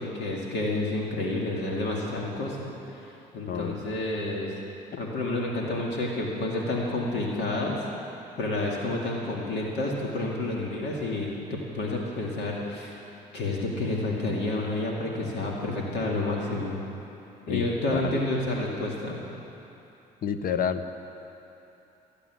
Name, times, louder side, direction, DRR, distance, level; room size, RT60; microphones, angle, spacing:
voice 1, 0.0-4.5 5.0-7.8 8.4-11.3 11.7-13.0 13.3-16.8 17.5-19.2, left 2 dB, 70° left, -2 dB, 2.3 m, -29 dB
voice 2, 20.2-20.8, left 7 dB, 50° left, 10 dB, 1.0 m, -29 dB
15.0 x 8.4 x 9.5 m, 2.9 s
supercardioid pair, 75°, 18 cm